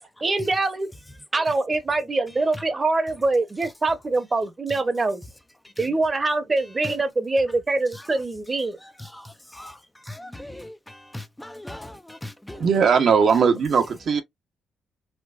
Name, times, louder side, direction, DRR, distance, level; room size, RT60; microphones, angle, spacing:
voice 1, 0.2-0.9 1.3-5.2 5.8-8.8, right 3 dB, 25° right, 0.9 m, -24 dB
voice 2, 10.1-10.7 11.1-12.6, left 1 dB, 5° left, 0.4 m, -38 dB
voice 3, 12.5-14.2, right 6 dB, 55° right, 0.9 m, -19 dB
4.4 x 2.3 x 2.5 m
cardioid pair, 90°, 0 cm